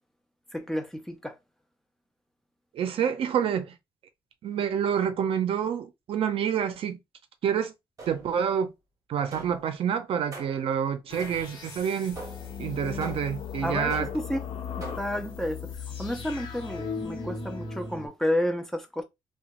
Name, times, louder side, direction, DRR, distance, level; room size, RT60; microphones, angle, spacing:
voice 1, 0.5-1.4 13.6-14.5 14.8-15.6 16.0-19.0, left 1 dB, 5° left, 0.5 m, -31 dB
voice 2, 2.7-3.7 4.4-7.0 7.4-7.7 8.1-8.7 9.1-12.2 12.6-14.1, right 8 dB, 65° right, 0.5 m, -28 dB
sound 1, 8.0-8.5 9.3-9.7 10.3-10.7 11.2-11.7 12.2-12.6 13.0-13.5 13.9-14.4 14.8-15.3, right 2 dB, 35° right, 1.0 m, -43 dB
sound 2, 11.1-18.1, left 5 dB, 45° left, 1.0 m, -37 dB
sound 3, 11.7-15.5, left 9 dB, 90° left, 0.5 m, -44 dB
2.9 x 2.2 x 2.9 m
cardioid pair, 150°, 10 cm